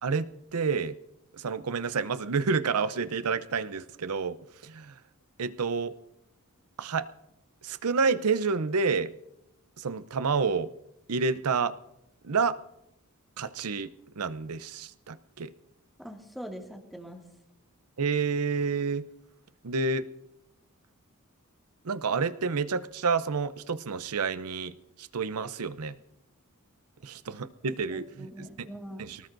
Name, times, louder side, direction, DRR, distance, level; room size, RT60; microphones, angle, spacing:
voice 1, 0.0-1.0 1.3-4.4 4.6-5.0 5.4-6.0 6.8-7.1 7.6-9.1 9.8-10.7 11.1-11.8 12.2-12.6 13.4-15.5 18.0-19.1 19.6-20.1 21.8-26.0 27.0-28.3 28.6-28.7 29.0-29.2, right 5 dB, 75° right, 14 dB, 0.6 m, -29 dB
voice 2, 16.0-17.2 27.9-29.1, equal, ahead, 1 dB, 2.1 m, -42 dB
24.0 x 19.0 x 2.6 m, 0.84 s
head